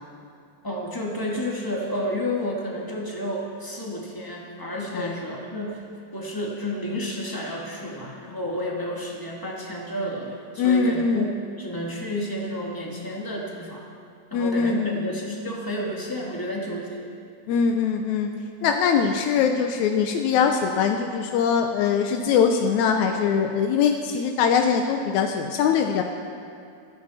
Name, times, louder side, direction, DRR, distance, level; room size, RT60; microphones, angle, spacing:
voice 1, 0.6-5.8 6.1-11.3 11.6-13.8 14.3-17.0, left 1 dB, 25° left, -3 dB, 0.4 m, -31 dB
voice 2, 10.6-11.3 14.3-15.1 17.5-18.3 18.6-26.0, left 6 dB, 75° left, 4 dB, 1.8 m, -22 dB
29.5 x 10.5 x 4.2 m, 2.4 s
omnidirectional pair, 4.1 m